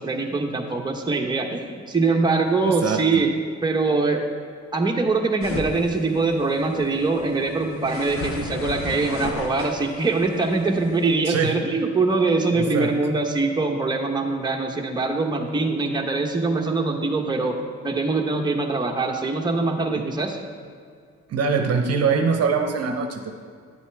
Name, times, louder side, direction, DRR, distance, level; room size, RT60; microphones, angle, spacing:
voice 1, 0.0-3.3 3.6-4.2 4.7-17.6 17.8-20.4, right 3 dB, 15° right, 1 dB, 1.0 m, -23 dB
voice 2, 2.6-3.2 11.3-11.6 12.5-12.9 19.9-20.0 21.3-23.3, right 5 dB, 55° right, 5 dB, 0.8 m, -23 dB
sound 1, 5.4-11.1, left 3 dB, 45° left, 0.9 m, -35 dB
10.5 x 8.1 x 3.4 m, 2.2 s
cardioid pair, 90°, 30 cm